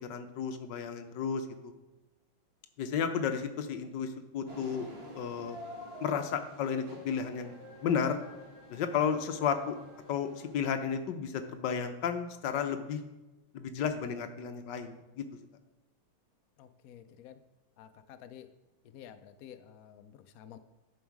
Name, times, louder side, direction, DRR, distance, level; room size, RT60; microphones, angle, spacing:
voice 1, 0.0-1.5 2.8-4.9 5.1-5.6 6.0-7.5 7.8-8.2 8.7-9.7 10.1-13.0 13.5-15.2, left 7 dB, 65° left, 7 dB, 1.3 m, -33 dB
sound 1, 4.5-10.5, equal, 65° right, 3.8 m, -49 dB
voice 2, 16.6-17.4 17.8-18.5 18.9-20.6, left 10 dB, 85° left, 9 dB, 0.7 m, -51 dB
10.5 x 6.3 x 4.7 m, 1.1 s
omnidirectional pair, 2.2 m